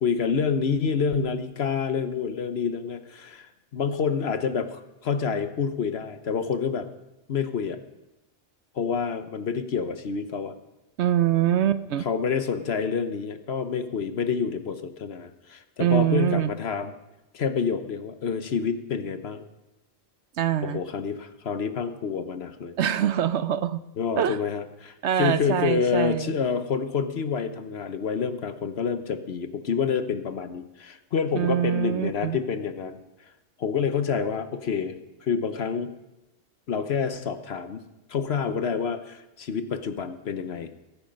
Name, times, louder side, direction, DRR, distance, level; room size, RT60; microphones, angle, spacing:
voice 1, 0.0-6.9 7.3-7.8 8.7-10.5 12.0-16.9 17.3-19.5 20.6-22.7 24.0-33.0 33.6-34.9 35.2-35.9 36.7-37.8 38.1-40.7, left 6 dB, 60° left, 9 dB, 1.1 m, -28 dB
voice 2, 11.0-12.1 15.8-16.5 20.4-20.8 22.8-23.8 24.2-24.4 25.0-26.4 31.3-32.4, right 11 dB, 65° right, 13 dB, 0.9 m, -24 dB
22.0 x 9.1 x 5.3 m, 0.99 s
omnidirectional pair, 1.3 m